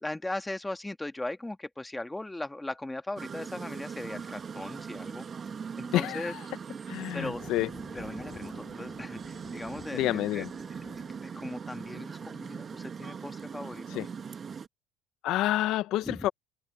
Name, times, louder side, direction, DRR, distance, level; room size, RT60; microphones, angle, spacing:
voice 1, 0.0-5.3 5.8-6.3 7.1-7.4 7.9-10.8 11.4-14.1 16.0-16.3, left 2 dB, 10° left, 1.9 m, -38 dB
sound 1, 3.2-14.7, right 6 dB, 30° right, 1.6 m, -40 dB
voice 2, 5.9-6.4 6.9-7.7 9.9-10.5 13.9-14.1 15.2-16.3, left 15 dB, 65° left, 0.7 m, -28 dB
sound 2, 7.0-12.0, left 8 dB, 40° left, 3.7 m, -51 dB
supercardioid pair, 110°, 0 cm